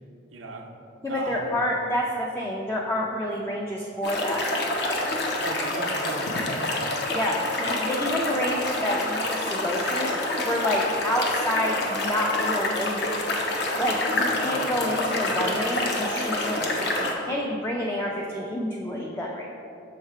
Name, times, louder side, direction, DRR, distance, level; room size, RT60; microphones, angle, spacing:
voice 1, 0.3-0.7 1.1-1.6 5.4-6.9 14.1-15.2, right 2 dB, 90° right, 3 dB, 0.6 m, -38 dB
voice 2, 1.0-4.4 7.1-13.4 13.8-19.5, left 1 dB, 10° left, -2 dB, 0.3 m, -28 dB
sound 1, 4.0-17.1, left 2 dB, 60° left, 0.7 m, -27 dB
6.3 x 3.3 x 4.6 m, 2.7 s
head